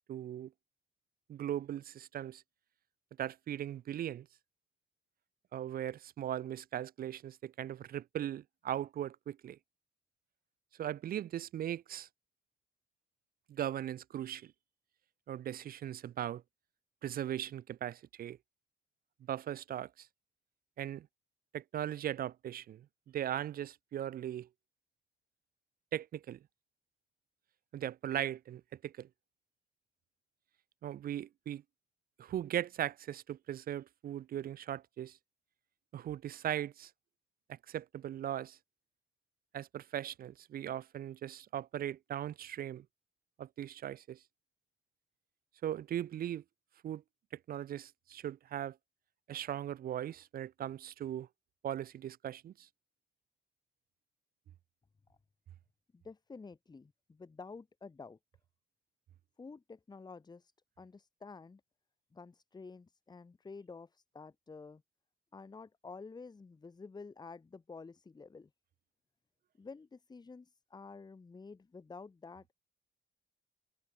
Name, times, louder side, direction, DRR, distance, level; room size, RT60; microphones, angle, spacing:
voice 1, 0.1-0.5 1.3-2.4 3.2-4.3 5.5-9.6 10.8-12.1 13.5-14.5 15.3-16.4 17.0-18.4 19.3-20.1 20.8-21.1 21.5-24.5 25.9-26.4 27.7-29.1 30.8-31.6 32.2-35.2 35.9-36.9 37.5-38.6 39.5-42.9 43.4-44.2 45.6-46.4 46.8-47.0 47.5-48.8 49.3-51.3 51.6-52.7, right 11 dB, 50° right, 0.4 m, -39 dB
voice 2, 55.9-58.2 59.4-60.5 60.8-61.6 62.1-64.8 65.3-68.5 69.6-72.5, left 4 dB, 20° left, 0.8 m, -50 dB
cardioid pair, 90°, 20 cm